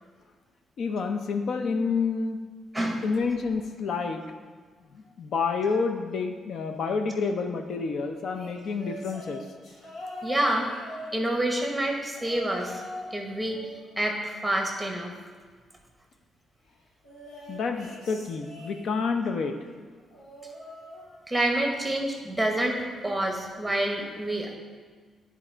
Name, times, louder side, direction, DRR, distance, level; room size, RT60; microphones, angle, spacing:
voice 1, 0.8-2.4 3.0-4.2 4.9-9.5 17.5-19.6, left 4 dB, 55° left, 6 dB, 0.5 m, -29 dB
sound 1, 8.3-11.6 12.2-13.2 13.4-15.0 17.0-19.2 20.1-21.6 21.9-22.3 23.4-23.5, left 1 dB, 75° left, 1.7 m, -43 dB
voice 2, 10.2-10.6 11.1-12.8 13.1-13.6 14.0-15.1 21.3-24.6, right 1 dB, 5° right, 1 dB, 0.9 m, -27 dB
9.9 x 4.0 x 4.4 m, 1.5 s
cardioid pair, 165°, 0 cm